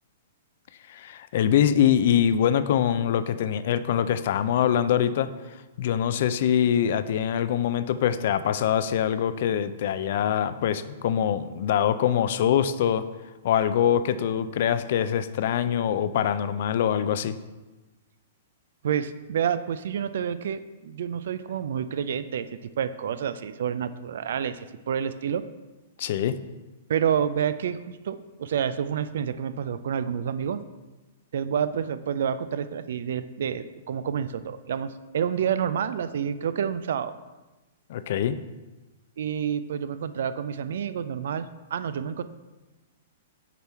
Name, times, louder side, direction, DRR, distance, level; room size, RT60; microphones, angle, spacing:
voice 1, 0.9-5.3 5.8-13.0 13.4-17.4 26.0-26.4 37.9-38.3, left 9 dB, 60° left, 13 dB, 0.4 m, -24 dB
voice 2, 18.8-22.5 22.8-25.4 26.9-30.6 31.3-37.2 39.2-42.2, right 8 dB, 65° right, 13 dB, 0.4 m, -29 dB
6.9 x 4.4 x 4.3 m, 1.2 s
hypercardioid pair, 115°, 0 cm